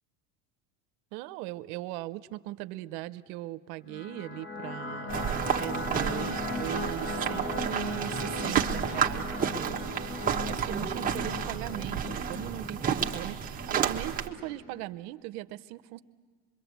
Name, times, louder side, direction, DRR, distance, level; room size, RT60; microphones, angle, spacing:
voice 1, 1.1-9.8 10.5-16.0, right 17 dB, 65° right, 14 dB, 0.8 m, -39 dB
sound 1, 3.9-14.8, left 3 dB, 25° left, 1.1 m, -38 dB
sound 2, 5.1-14.3, right 8 dB, 15° right, 1.1 m, -31 dB
25.5 x 23.0 x 8.1 m, 1.5 s
supercardioid pair, 140°, 50 cm